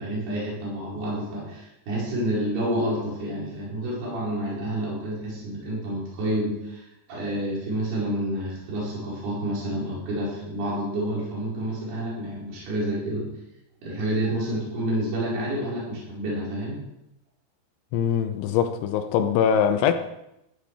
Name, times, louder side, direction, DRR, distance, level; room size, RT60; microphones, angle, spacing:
voice 1, 0.0-6.8 7.1-13.3 13.8-16.8, right 1 dB, 60° right, 6.7 m, -29 dB
voice 2, 17.9-19.9, left 8 dB, 85° left, 3.3 m, -22 dB
14.5 x 12.5 x 4.9 m
omnidirectional pair, 5.3 m